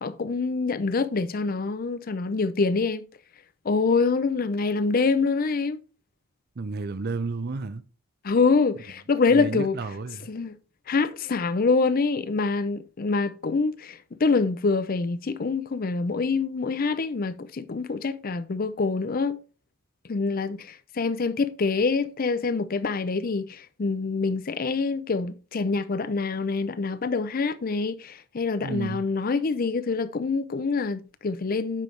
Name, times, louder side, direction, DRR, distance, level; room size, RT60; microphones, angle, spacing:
voice 1, 0.0-3.1 3.6-5.8 8.2-9.8 10.3-10.6 10.9-19.4 20.1-31.8, left 4 dB, 40° left, 0.5 m, -25 dB
voice 2, 6.6-7.8 9.3-10.3 28.6-29.0, right 3 dB, 45° right, 0.5 m, -32 dB
9.1 x 5.3 x 3.2 m
head